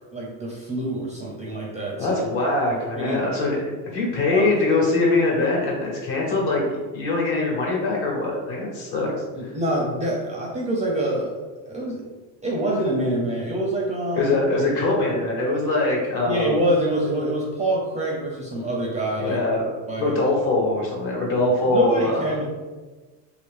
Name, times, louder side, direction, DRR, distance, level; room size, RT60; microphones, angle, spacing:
voice 1, 0.0-2.2 2.9-3.2 4.3-4.5 9.3-11.3 11.7-12.0 12.4-14.3 16.3-19.4 19.9-20.1 21.7-22.5, right 1 dB, 15° right, -3 dB, 0.5 m, -26 dB
voice 2, 2.0-9.1 9.4-9.5 14.1-16.6 19.2-19.6 19.9-22.2, left 2 dB, 55° left, -2 dB, 1.4 m, -23 dB
2.8 x 2.7 x 3.6 m, 1.3 s
supercardioid pair, 110°, 49 cm